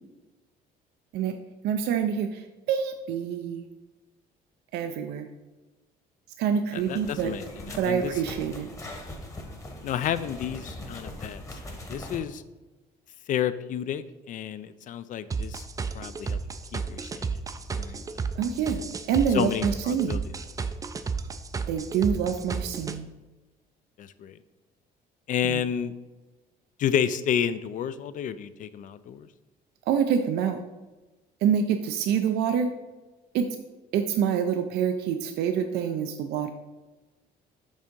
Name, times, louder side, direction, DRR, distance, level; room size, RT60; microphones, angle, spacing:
voice 1, 1.6-3.7 4.7-5.3 6.4-7.3 7.8-8.7 18.4-18.8 19.1-20.2 21.7-23.1 25.4-25.6 29.9-30.6 31.4-32.7 33.3-33.5 33.9-36.5, right 7 dB, 75° right, 7 dB, 0.5 m, -26 dB
voice 2, 6.7-8.1 9.8-11.4 11.7-12.4 13.3-15.6 15.9-16.4 16.7-17.3 17.8-18.0 19.3-20.2 24.0-24.3 25.3-25.9 26.8-29.3, left 9 dB, 50° left, 14 dB, 0.4 m, -30 dB
sound 1, 6.8-12.2, left 1 dB, 20° left, 1.1 m, -41 dB
sound 2, 15.3-23.0, right 5 dB, 20° right, 0.3 m, -32 dB
5.2 x 3.5 x 5.2 m, 1.1 s
cardioid pair, 110°, 17 cm